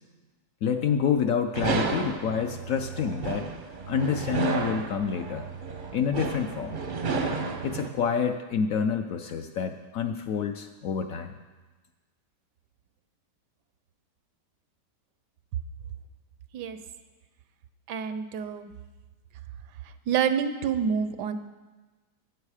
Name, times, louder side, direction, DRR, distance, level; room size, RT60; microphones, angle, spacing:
voice 1, 0.6-3.5 3.9-5.5 5.9-6.7 7.6-11.4, left 7 dB, 65° left, 6 dB, 0.9 m, -28 dB
sound 1, 1.5-7.9, right 4 dB, 45° right, 0.6 m, -32 dB
voice 2, 17.9-18.7 20.1-21.3, right 7 dB, 80° right, 11 dB, 1.2 m, -27 dB
13.0 x 7.9 x 4.9 m, 1.2 s
omnidirectional pair, 1.9 m